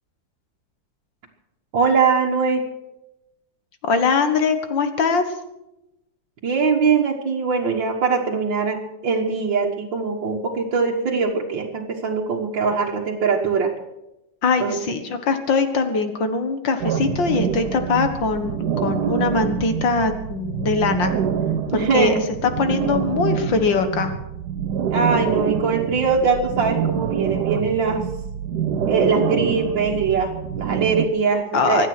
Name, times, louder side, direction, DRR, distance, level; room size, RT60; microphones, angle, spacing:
voice 1, 1.7-2.6 6.4-8.8 9.0-13.7 14.6-15.0 21.7-22.2 24.9-28.1 28.9-31.9, right 5 dB, 80° right, -2 dB, 2.3 m, -22 dB
voice 2, 3.8-5.2 14.4-21.2 21.7-22.1 22.4-24.1 31.5-31.9, left 4 dB, 80° left, 8 dB, 2.3 m, -22 dB
sound 1, 16.8-31.1, right 8 dB, 65° right, 1.3 m, -26 dB
24.5 x 9.1 x 6.2 m, 0.90 s
omnidirectional pair, 2.0 m